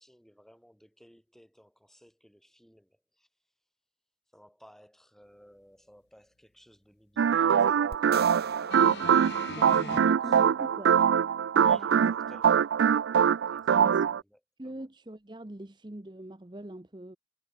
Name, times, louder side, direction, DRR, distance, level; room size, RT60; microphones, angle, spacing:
voice 1, 0.0-3.3 4.3-8.7 9.2-10.4 11.6-12.9 13.5-14.9, equal, ahead, 5.2 m, -59 dB
sound 1, 7.2-14.2, right 8 dB, 85° right, 0.3 m, -23 dB
sound 2, 7.9-10.3, right 4 dB, 55° right, 2.8 m, -43 dB
sound 3, 8.7-10.0 11.0-11.1, left 4 dB, 60° left, 1.1 m, -40 dB
voice 2, 9.6-11.0 11.5-12.1 13.8-14.0 14.6-17.2, right 1 dB, 25° right, 0.8 m, -42 dB
head